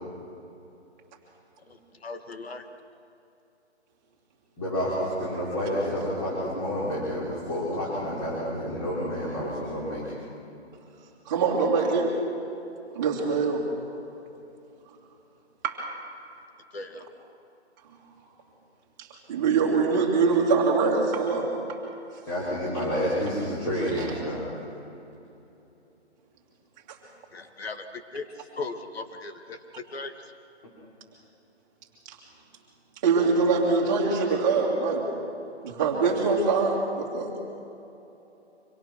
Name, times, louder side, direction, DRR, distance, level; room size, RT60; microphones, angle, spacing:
voice 1, 1.7-2.7 16.7-17.0 27.3-28.3 28.6-30.2, left 3 dB, 60° left, 7 dB, 2.3 m, -38 dB
voice 2, 4.6-10.0 22.3-24.4, equal, 25° left, -7 dB, 5.1 m, -29 dB
voice 3, 11.3-12.1 12.9-13.6 15.6-15.8 19.0-21.8 24.0-24.1 32.1-32.2 33.0-35.1 35.6-37.3, right 4 dB, 15° right, -2 dB, 2.6 m, -24 dB
25.5 x 25.5 x 6.1 m, 2.9 s
hypercardioid pair, 170°, 35 cm